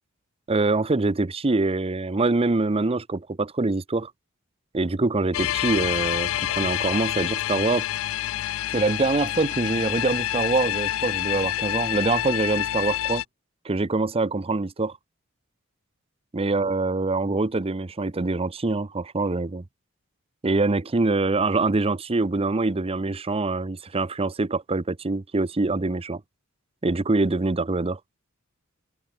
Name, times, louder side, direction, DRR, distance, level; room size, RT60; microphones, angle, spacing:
voice 1, 0.5-4.1 4.7-7.9 8.7-13.2 13.6-15.0 16.3-19.6 20.4-26.2 26.8-28.0, right 3 dB, 25° right, 0.7 m, -24 dB
sound 1, 5.3-13.2, left 13 dB, 65° left, 0.4 m, -27 dB
open air
head